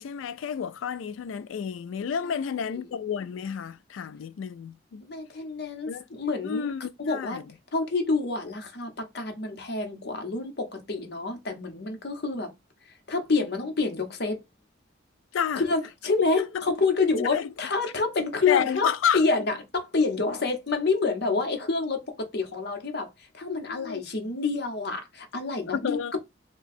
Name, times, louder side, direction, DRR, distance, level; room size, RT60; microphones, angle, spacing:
voice 1, 0.0-5.0 5.9-6.0 6.4-7.4 15.3-15.6 16.4-16.5 17.3-17.5 18.5-19.2 23.7-24.0 25.7-26.2, left 7 dB, 85° left, 0.3 m, -30 dB
voice 2, 2.2-3.0 5.0-6.7 7.0-7.4 7.7-12.5 12.9-14.4 15.5-18.9 19.1-23.1 23.3-26.0, left 4 dB, 55° left, 0.8 m, -28 dB
2.6 x 2.3 x 4.0 m
head